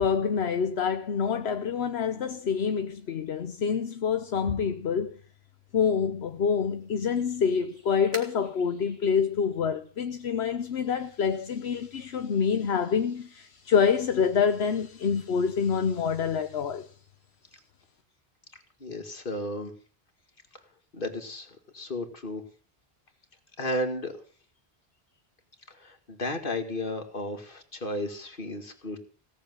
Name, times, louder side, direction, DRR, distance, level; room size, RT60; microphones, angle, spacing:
voice 1, 0.0-5.2 5.7-16.9, left 6 dB, 80° left, 1.1 m, -27 dB
sound 1, 6.2-11.4, right 2 dB, 40° right, 3.9 m, -50 dB
voice 2, 18.8-19.7 20.9-21.5 21.7-22.4 23.6-24.1 25.7-29.0, left 1 dB, 55° left, 2.4 m, -33 dB
17.5 x 7.2 x 9.6 m
omnidirectional pair, 1.1 m